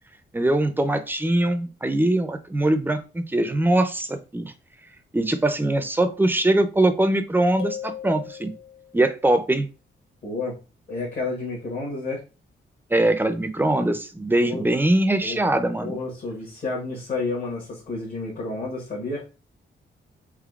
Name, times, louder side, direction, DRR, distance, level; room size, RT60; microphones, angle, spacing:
voice 1, 0.3-4.5 5.1-8.5 8.9-9.7 12.9-16.0, right 1 dB, 10° right, 9 dB, 0.3 m, -22 dB
sound 1, 7.6-9.1, left 8 dB, 75° left, 0.8 m, -37 dB
voice 2, 10.2-10.5 10.9-12.2 14.4-14.7 15.2-15.4 15.8-19.2, left 3 dB, 50° left, -4 dB, 1.1 m, -30 dB
3.6 x 3.2 x 2.3 m, 0.32 s
cardioid pair, 100°, 19 cm